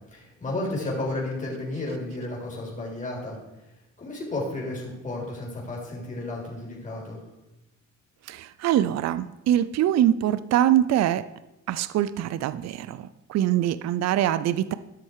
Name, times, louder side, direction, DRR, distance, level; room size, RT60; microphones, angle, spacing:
voice 1, 0.1-3.4 4.0-7.2, left 2 dB, 25° left, -3 dB, 3.7 m, -32 dB
voice 2, 8.3-11.3 11.7-14.7, right 11 dB, 60° right, 15 dB, 0.5 m, -23 dB
12.0 x 6.3 x 4.7 m, 0.96 s
cardioid pair, 90°, 30 cm